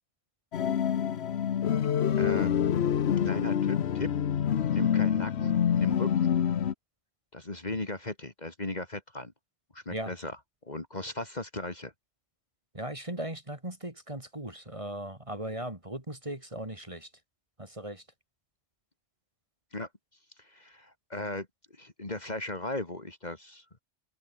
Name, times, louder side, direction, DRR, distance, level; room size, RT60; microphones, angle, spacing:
sound 1, 0.5-6.7, left 9 dB, 60° left, 1.1 m, -26 dB
voice 1, 2.2-2.5 3.2-4.1 4.7-6.3 7.3-9.3 9.7-10.4 10.6-11.9 19.7-19.9 20.4-21.5 21.8-23.6, left 2 dB, 35° left, 2.4 m, -37 dB
voice 2, 12.7-17.1 17.6-18.0, right 1 dB, 25° right, 3.2 m, -38 dB
open air
omnidirectional pair, 1.3 m